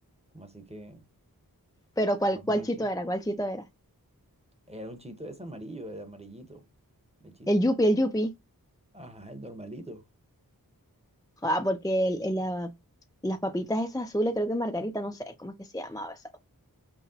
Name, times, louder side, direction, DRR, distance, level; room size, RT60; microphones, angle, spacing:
voice 1, 0.3-1.1 2.3-2.9 4.7-6.6 7.2-7.5 8.9-10.1, right 1 dB, 15° right, 1.1 m, -43 dB
voice 2, 2.0-3.6 7.5-8.3 11.4-12.7 13.2-16.4, equal, 10° left, 0.5 m, -27 dB
5.8 x 2.2 x 2.8 m
wide cardioid pair, 45°, 37 cm